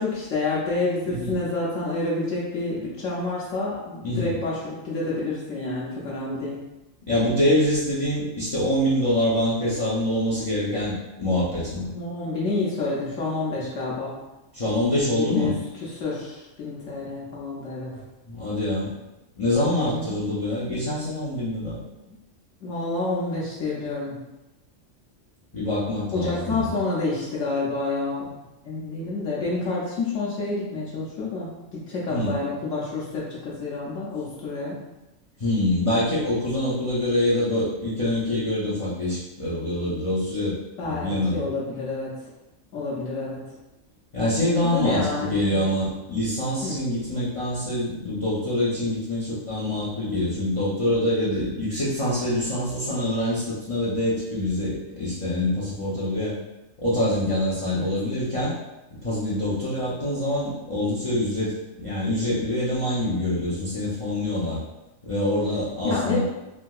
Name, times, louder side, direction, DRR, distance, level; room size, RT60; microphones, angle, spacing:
voice 1, 0.0-6.6 11.9-14.1 15.1-15.5 15.9-17.9 19.7-20.2 22.1-22.2 22.6-24.2 26.1-28.3 28.6-34.8 40.8-42.2 42.7-43.5 44.6-45.6 46.6-46.8 57.7-57.9 65.8-66.2, left 3 dB, 75° left, -6 dB, 1.1 m, -28 dB
voice 2, 1.1-1.4 4.0-4.4 7.1-11.9 14.5-15.6 18.3-18.9 19.4-21.8 25.5-26.8 32.1-32.4 35.4-40.6 40.8-41.5 44.1-56.3 56.8-58.5 59.0-64.6 65.0-66.2, left 1 dB, 45° left, -8 dB, 0.4 m, -25 dB
3.3 x 2.7 x 2.3 m, 1.0 s
omnidirectional pair, 1.4 m